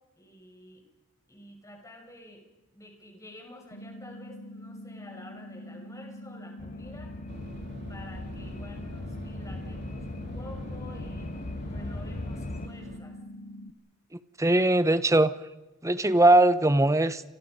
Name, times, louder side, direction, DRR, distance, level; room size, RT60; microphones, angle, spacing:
voice 1, 0.2-0.8 1.3-7.2 7.9-13.2, left 1 dB, 15° left, 6.5 m, -49 dB
sound 1, 3.7-13.7, left 1 dB, 85° left, 1.1 m, -44 dB
sound 2, 6.6-12.7, left 2 dB, 40° left, 0.9 m, -39 dB
sound 3, 7.3-13.0, equal, 60° right, 3.0 m, -45 dB
voice 2, 14.4-15.3 15.8-17.2, right 1 dB, 15° right, 1.1 m, -20 dB
29.5 x 25.5 x 5.4 m
head